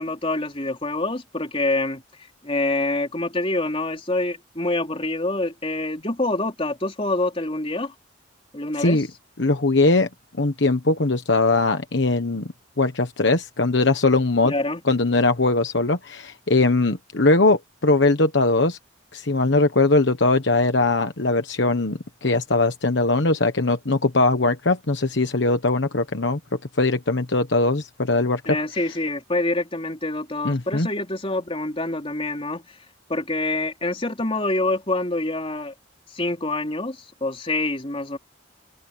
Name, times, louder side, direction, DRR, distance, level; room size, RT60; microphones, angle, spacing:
voice 1, 0.0-2.0 2.4-7.9 8.5-9.0 14.4-14.8 28.5-32.6 33.1-35.7 36.1-38.2, left 2 dB, 30° left, 4.1 m, -26 dB
voice 2, 9.4-10.1 10.4-12.5 12.8-14.5 14.8-18.8 19.1-26.4 26.8-28.6 30.4-30.9, left 2 dB, 65° left, 1.3 m, -20 dB
open air
head